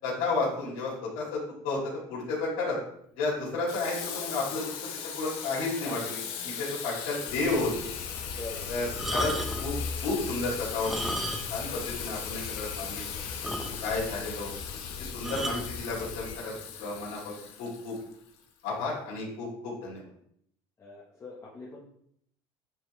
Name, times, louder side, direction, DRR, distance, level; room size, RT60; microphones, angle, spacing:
voice 1, 0.0-1.8 2.1-2.8 3.2-4.6 5.1-6.2 6.4-7.7 8.7-8.9 9.1-9.3 9.6-9.7 10.0-10.9 11.5-13.0 13.8-14.5 15.1-16.5 16.8-17.2 17.6-17.9 18.6-20.0, left 3 dB, 90° left, -8 dB, 3.2 m, -31 dB
Water tap faucet / Sink (filling or washing), 3.7-18.4, left 8 dB, 70° left, 1.4 m, -38 dB
voice 2, 5.8-6.8 8.4-8.9 20.8-21.9, left 3 dB, 25° left, -5 dB, 1.5 m, -44 dB
sound 1, 7.3-16.4, left 5 dB, 50° left, 0.6 m, -41 dB
sound 2, 8.9-9.8 10.7-11.7 12.0-12.1 12.6-12.7 13.0-13.1 13.4-14.1 15.2-15.7 16.6-16.8, equal, ahead, 0.6 m, -34 dB
9.4 x 4.4 x 3.4 m, 0.69 s
cardioid pair, 130°, 10 cm